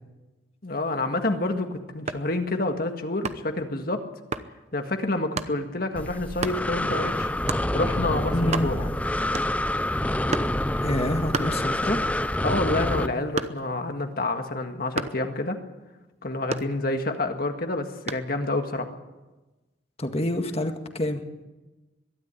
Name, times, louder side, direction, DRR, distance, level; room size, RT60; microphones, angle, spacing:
voice 1, 0.6-4.0 4.7-7.3 7.7-8.9 12.4-15.6 16.2-18.9, left 2 dB, 50° left, 5 dB, 1.8 m, -28 dB
sound 1, 1.9-2.4 3.2-3.6 4.3-4.5 5.4-5.6 6.4-6.7 7.5-7.7 8.1-8.2 8.4-9.0 9.3-9.8 10.3-10.6 11.3-12.1 12.5-13.8 15.0-15.3 16.5-17.2 18.1-18.4, right 3 dB, 35° right, 0.9 m, -32 dB
Breathing, 6.0-13.1, left 1 dB, 10° left, 0.6 m, -27 dB
voice 2, 8.3-8.7 10.8-12.0 20.0-21.2, left 1 dB, 35° left, 5 dB, 1.8 m, -27 dB
22.5 x 12.0 x 9.6 m, 1.1 s
head